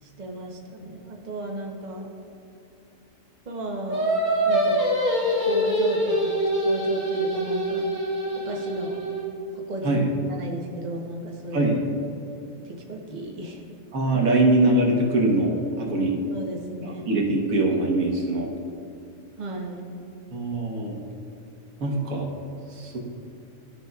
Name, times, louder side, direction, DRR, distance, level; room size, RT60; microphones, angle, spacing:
voice 1, 0.0-2.1 3.5-4.2 4.5-4.8 5.5-6.3 6.6-7.9 8.4-9.0 9.7-11.7 12.6-13.6 16.3-17.2 19.4-19.9, right 1 dB, 40° right, 0 dB, 0.9 m, -34 dB
Singing, 3.9-9.3, equal, 15° right, 1.7 m, -24 dB
voice 2, 11.5-11.8 13.9-16.2 16.8-18.5 20.3-21.0 21.8-22.3 22.7-23.0, right 2 dB, 90° right, -1 dB, 1.6 m, -23 dB
13.5 x 5.1 x 2.4 m, 2.8 s
omnidirectional pair, 1.4 m